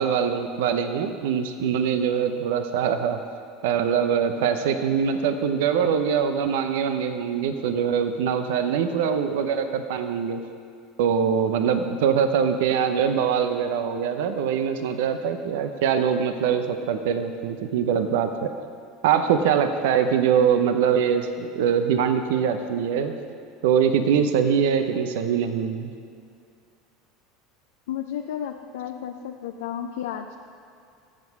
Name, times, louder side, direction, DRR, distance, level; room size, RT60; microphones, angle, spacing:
voice 1, 0.0-3.2 3.6-10.4 11.0-18.5 19.0-23.2 23.6-25.9, right 7 dB, 75° right, 8 dB, 0.7 m, -23 dB
voice 2, 27.9-30.4, left 9 dB, 80° left, 4 dB, 0.5 m, -32 dB
14.5 x 7.5 x 5.8 m, 2.4 s
hypercardioid pair, 90°, 0 cm